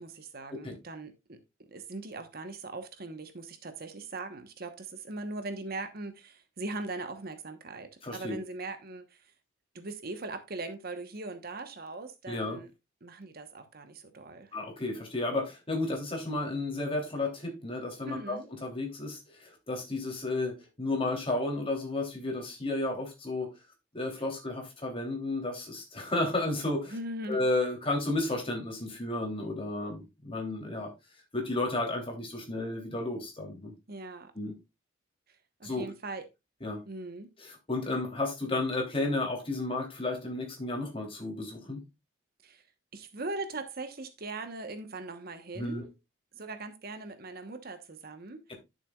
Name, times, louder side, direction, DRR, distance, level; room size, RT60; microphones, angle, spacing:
voice 1, 0.0-1.4 1.7-9.3 9.7-12.7 13.0-14.5 18.0-18.5 26.9-27.5 33.9-34.3 35.6-36.2 36.8-37.3 42.4-42.6 42.9-45.9 46.3-48.4, right 2 dB, 50° right, 1.1 m, -40 dB
voice 2, 8.0-8.3 12.3-12.6 14.5-23.5 23.9-26.9 27.3-30.9 31.3-33.7 34.3-34.5 35.6-35.9 36.6-36.8 37.4-41.8 45.5-45.8, left 2 dB, 30° left, 3.1 m, -32 dB
12.0 x 6.9 x 2.4 m
head